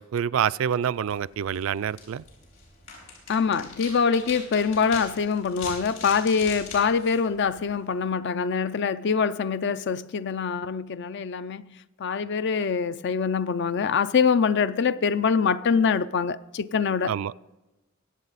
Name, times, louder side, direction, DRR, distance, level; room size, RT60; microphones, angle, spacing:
voice 1, 0.0-2.2 17.1-17.6, right 8 dB, 65° right, 0.3 m, -27 dB
sound 1, 1.0-7.9, left 4 dB, 70° left, 5.3 m, -42 dB
voice 2, 3.3-11.7 12.0-17.1, left 5 dB, 55° left, 0.4 m, -24 dB
23.0 x 8.4 x 4.1 m
head